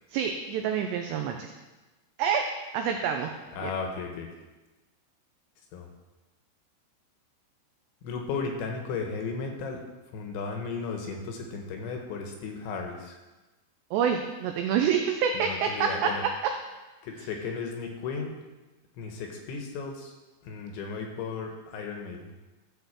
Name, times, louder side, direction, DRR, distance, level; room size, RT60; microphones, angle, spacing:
voice 1, 0.1-1.5 2.2-3.3 3.6-3.7 13.9-16.1 17.2-17.3, right 7 dB, 90° right, 4 dB, 2.4 m, -27 dB
voice 2, 3.5-4.3 5.7-5.9 8.0-9.8 10.1-13.2 15.4-16.2 17.0-18.3 19.0-20.1 20.4-22.2, left 4 dB, 70° left, 2 dB, 3.2 m, -35 dB
13.0 x 5.7 x 7.3 m, 1.1 s
omnidirectional pair, 5.9 m